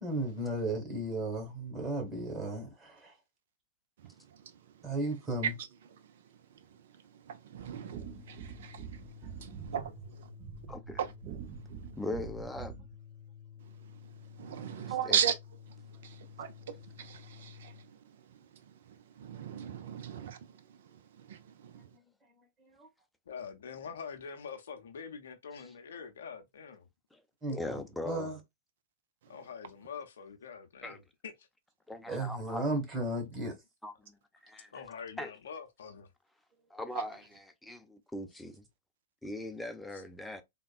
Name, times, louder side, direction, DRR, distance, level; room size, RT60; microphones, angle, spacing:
voice 1, 0.0-3.2 4.8-5.5 14.5-14.9 21.9-22.0 22.6-22.9 27.4-28.4 32.1-33.6, right 1 dB, 25° right, 1.6 m, -35 dB
voice 2, 4.0-5.0 5.4-5.7 6.0-9.1 9.7-9.8 10.1-10.4 11.0-11.1 11.4-11.6 13.6-15.3 15.7-22.0 29.2-29.4 36.9-37.0, right 8 dB, 65° right, 0.6 m, -38 dB
Organ, 7.6-17.9, left 8 dB, 40° left, 0.8 m, -52 dB
sound 1, 7.6-12.9, right 9 dB, 45° right, 0.9 m, -46 dB
voice 3, 10.7-11.0 12.0-12.7 15.1-15.2 27.1-27.2 27.5-28.3 30.8-31.0 31.9-32.6 33.8-34.7 35.2-35.3 36.7-38.7 39.2-40.4, left 2 dB, 5° left, 0.5 m, -40 dB
voice 4, 23.3-26.9 29.3-31.5 34.7-36.1 39.9-40.0, left 6 dB, 70° left, 0.6 m, -45 dB
3.5 x 2.2 x 2.4 m
hypercardioid pair, 105°, 0 cm